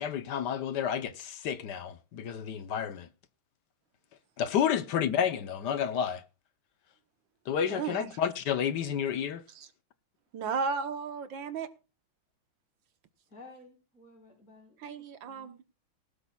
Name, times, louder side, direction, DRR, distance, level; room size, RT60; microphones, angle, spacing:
voice 1, 0.0-3.1 4.4-6.2 7.5-9.4, left 8 dB, 65° left, 1.3 m, -30 dB
voice 2, 7.7-8.1 9.5-9.7 10.3-11.7 14.8-15.6, right 5 dB, 70° right, 1.7 m, -34 dB
voice 3, 13.3-15.5, left 2 dB, 45° left, 4.9 m, -54 dB
18.5 x 12.5 x 2.3 m
omnidirectional pair, 2.2 m